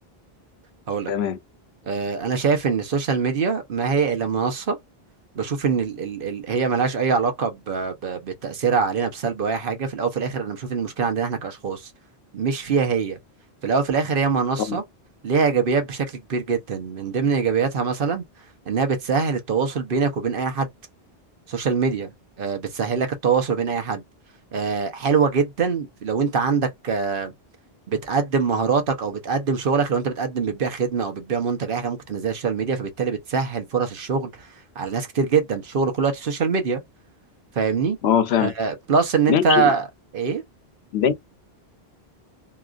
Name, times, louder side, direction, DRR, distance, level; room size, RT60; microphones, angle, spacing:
voice 1, 1.1-1.4 14.7-14.8 38.0-38.5 39.3-39.7 40.9-41.3, left 8 dB, 90° left, 0.8 m, -21 dB
voice 2, 1.9-4.8 5.3-11.8 12.3-13.2 13.6-14.8 15.2-18.2 18.7-20.7 21.5-22.1 22.4-24.0 24.5-27.3 27.9-34.5 34.8-36.8 37.6-38.0 38.4-39.8 40.1-40.4, right 5 dB, 60° right, 0.9 m, -23 dB
2.9 x 2.4 x 2.3 m
omnidirectional pair, 1.1 m